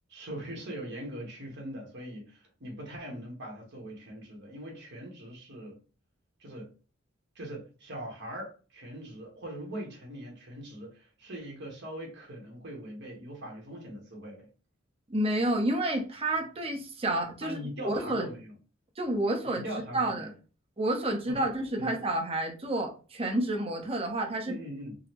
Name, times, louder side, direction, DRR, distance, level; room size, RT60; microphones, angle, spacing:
voice 1, 0.1-5.8 6.4-6.7 7.3-14.5 17.4-18.5 19.4-20.3 21.3-21.5 21.8-21.9 24.4-25.0, right 1 dB, 60° right, 1.2 m, -41 dB
voice 2, 15.1-18.3 19.0-19.6 19.9-20.3 20.8-24.6, right 1 dB, 30° right, 0.7 m, -30 dB
3.8 x 2.0 x 2.9 m
head